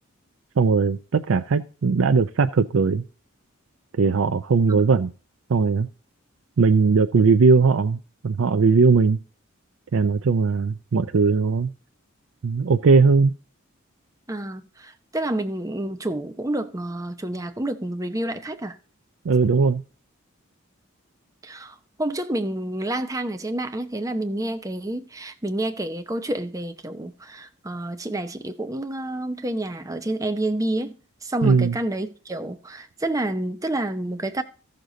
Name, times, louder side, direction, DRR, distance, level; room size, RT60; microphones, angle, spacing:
voice 1, 0.6-3.0 4.0-5.1 5.5-5.9 6.6-9.2 9.9-11.7 12.4-13.3 19.2-19.8 31.4-31.7, right 4 dB, 70° right, 0.5 m, -19 dB
voice 2, 14.3-18.8 21.4-31.0 31.2-34.4, right 1 dB, 15° right, 0.7 m, -29 dB
14.0 x 6.6 x 3.9 m
head